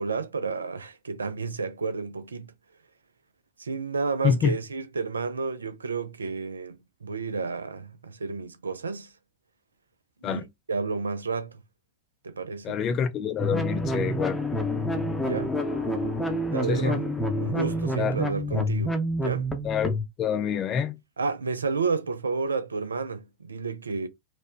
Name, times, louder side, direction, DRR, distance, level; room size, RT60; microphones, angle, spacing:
voice 1, 0.0-2.5 3.6-9.1 10.2-11.6 12.2-12.8 15.2-15.5 16.5-17.1 17.4-19.5 21.2-24.1, right 4 dB, 75° right, 0.4 m, -31 dB
voice 2, 4.2-4.6 10.2-10.4 12.6-14.4 16.7-17.0 18.0-18.2 18.5-18.7 19.6-21.0, left 7 dB, 30° left, 0.4 m, -27 dB
sound 1, 13.4-20.1, equal, ahead, 0.7 m, -28 dB
4.2 x 2.2 x 3.0 m
figure-of-eight pair, 90°, 0 cm